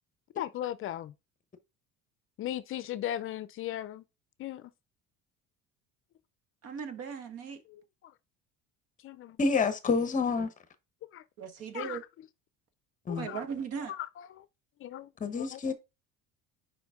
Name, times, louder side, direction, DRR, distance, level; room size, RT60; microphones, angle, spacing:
voice 1, 0.4-1.1 2.4-4.0 4.4-4.7 8.0-8.1 9.0-9.4 11.1-11.2 11.7-12.0 13.1-13.4 13.9-14.4 14.8-15.1 15.4-15.7, left 12 dB, 45° left, 0.5 m, -37 dB
voice 2, 6.6-7.6 11.4-12.0 13.1-13.9, right 6 dB, 55° right, 1.5 m, -38 dB
voice 3, 9.4-10.5 13.1-13.3 15.2-15.7, left 4 dB, 25° left, 1.0 m, -28 dB
6.7 x 5.1 x 3.7 m
cardioid pair, 130°, 29 cm